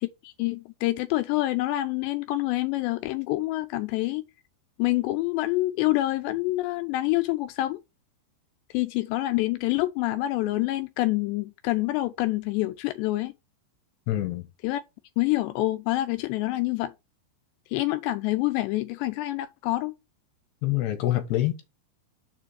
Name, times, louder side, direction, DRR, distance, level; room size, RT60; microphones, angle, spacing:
voice 1, 0.0-4.2 4.8-7.8 8.7-13.3 14.6-14.8 15.2-16.9 17.7-19.9, left 17 dB, 85° left, 2.5 m, -27 dB
voice 2, 14.1-14.5 20.6-21.7, left 14 dB, 70° left, 3.2 m, -26 dB
7.1 x 4.9 x 6.3 m
omnidirectional pair, 5.6 m